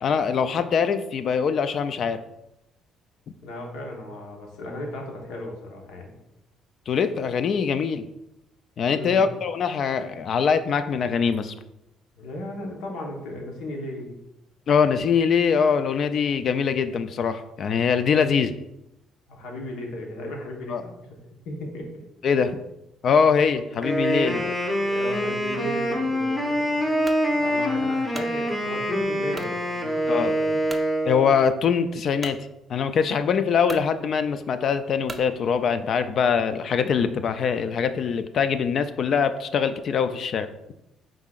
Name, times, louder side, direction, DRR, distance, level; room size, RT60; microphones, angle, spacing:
voice 1, 0.0-2.2 6.9-8.0 8.8-11.5 14.7-18.5 20.7-20.8 22.2-22.6 23.0-24.5 30.1-30.3 31.1-32.4 32.7-40.5, left 6 dB, 55° left, 11 dB, 0.3 m, -23 dB
voice 2, 3.4-6.2 8.9-9.2 12.2-14.2 19.3-21.2 21.4-22.0 24.6-26.9 27.3-30.6, left 1 dB, 85° left, 0 dB, 1.1 m, -35 dB
Wind instrument woodwind instrument, 23.8-31.4, equal, 10° left, 0.9 m, -25 dB
sound 1, 27.0-27.3 27.8-28.4 29.3-29.6 30.1-30.2 30.7-30.9 32.2-32.4 33.2-33.3 33.6-33.9 35.1-35.3, right 3 dB, 20° right, 0.4 m, -39 dB
5.6 x 3.6 x 2.4 m, 0.87 s
cardioid pair, 95°, 0 cm